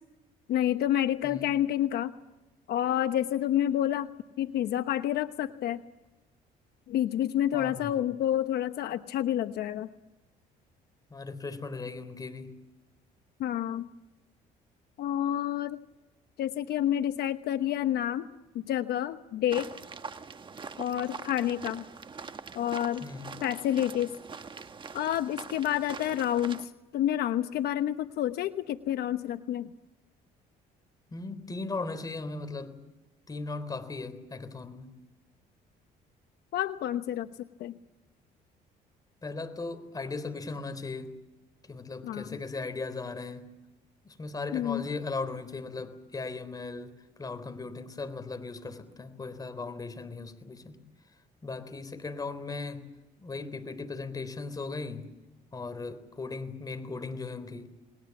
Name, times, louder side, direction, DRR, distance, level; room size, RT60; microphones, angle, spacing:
voice 1, 0.5-2.1 2.7-4.1 4.4-5.8 6.9-9.9 13.4-13.9 15.0-15.8 16.4-18.3 18.7-19.7 20.8-21.8 22.5-23.0 23.4-24.1 24.9-29.7 36.5-37.3 37.6-37.7 42.0-42.3 44.5-44.8, left 11 dB, 70° left, 9 dB, 1.0 m, -29 dB
voice 2, 7.5-8.1 11.1-12.5 23.0-23.4 31.1-32.8 33.3-34.9 39.2-41.1 41.7-43.5 44.0-50.8 51.4-52.9 53.2-55.1 55.5-57.7, left 3 dB, 20° left, 10 dB, 3.7 m, -38 dB
sound 1, 19.5-26.7, right 5 dB, 30° right, 1.4 m, -43 dB
29.5 x 20.5 x 7.2 m, 1.1 s
cardioid pair, 110°, 17 cm